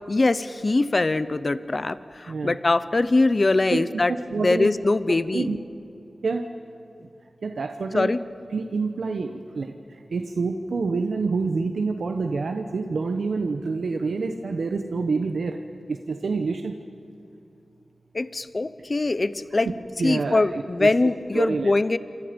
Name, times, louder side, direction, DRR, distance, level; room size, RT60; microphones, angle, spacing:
voice 1, 0.1-5.5 7.9-8.2 18.1-19.7 20.0-22.0, left 2 dB, 40° left, 14 dB, 0.7 m, -22 dB
voice 2, 2.3-2.6 3.7-3.8 4.1-4.7 5.3-5.6 6.2-6.4 7.4-8.1 8.5-9.7 10.1-15.6 15.9-16.7 19.5-19.6 20.0-21.7, right 4 dB, 90° right, 5 dB, 1.0 m, -27 dB
28.0 x 27.0 x 5.3 m, 2.6 s
wide cardioid pair, 110°, 0 cm